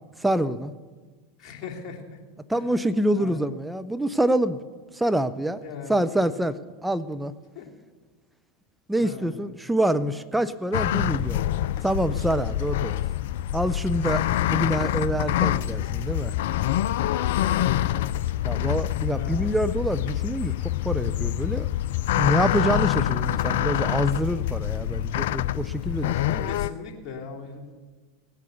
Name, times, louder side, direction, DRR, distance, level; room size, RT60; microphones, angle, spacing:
voice 1, 0.2-0.7 2.5-4.6 4.9-5.6 5.9-7.3 8.9-11.4 11.8-13.0 13.5-16.3 18.4-20.6 20.8-21.7 22.2-26.4, right 1 dB, 5° right, 12 dB, 0.5 m, -26 dB
voice 2, 1.4-2.2 2.5-2.8 3.2-3.4 5.6-6.3 7.5-7.7 9.0-9.3 17.5-17.6 18.5-18.6 19.1-19.6 26.2-27.7, left 6 dB, 40° left, -1 dB, 3.0 m, -39 dB
sound 1, 10.7-26.7, left 13 dB, 65° left, 0.4 m, -26 dB
17.5 x 8.4 x 6.9 m, 1.4 s
hypercardioid pair, 90°, 0 cm